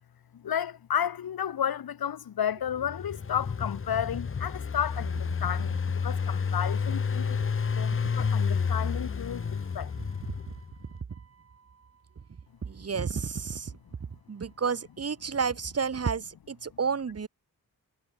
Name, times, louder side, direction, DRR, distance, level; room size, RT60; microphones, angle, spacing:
voice 1, 0.3-7.4 7.7-9.9, left 9 dB, 80° left, 3.4 m, -32 dB
Engine, 2.7-10.7, left 6 dB, 35° left, 1.5 m, -30 dB
voice 2, 12.6-13.7 14.3-17.3, right 6 dB, 40° right, 3.8 m, -31 dB
wide cardioid pair, 165°, 36 cm